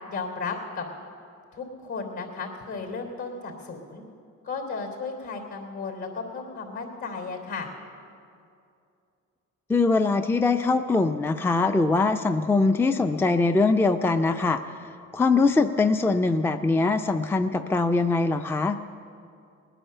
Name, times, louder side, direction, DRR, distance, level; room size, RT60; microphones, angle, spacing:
voice 1, 0.1-0.9 1.5-4.0 4.4-7.7, left 4 dB, 70° left, 3 dB, 3.6 m, -34 dB
voice 2, 9.7-18.8, left 3 dB, 10° left, 8 dB, 0.4 m, -22 dB
19.5 x 10.0 x 6.8 m, 2.5 s
cardioid pair, 90°, 30 cm